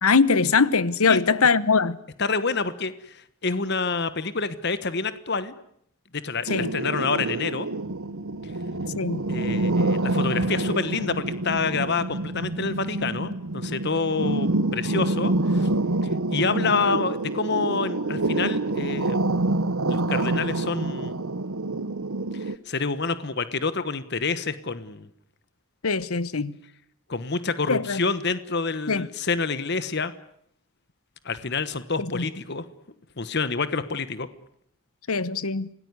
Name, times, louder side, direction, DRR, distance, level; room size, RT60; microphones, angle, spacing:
voice 1, 0.0-2.0 6.5-6.7 9.0-9.2 25.8-26.5 27.7-28.0 28.9-29.1 32.0-32.3 35.1-35.7, left 4 dB, 80° left, 1.1 m, -22 dB
voice 2, 2.2-5.5 6.1-7.7 9.3-15.7 16.3-19.2 19.9-21.2 22.5-25.1 27.1-30.1 31.2-32.6 33.2-34.3, left 4 dB, 50° left, 1.2 m, -27 dB
sound 1, 6.5-22.5, right 2 dB, 75° right, 1.0 m, -27 dB
26.5 x 18.5 x 9.7 m
head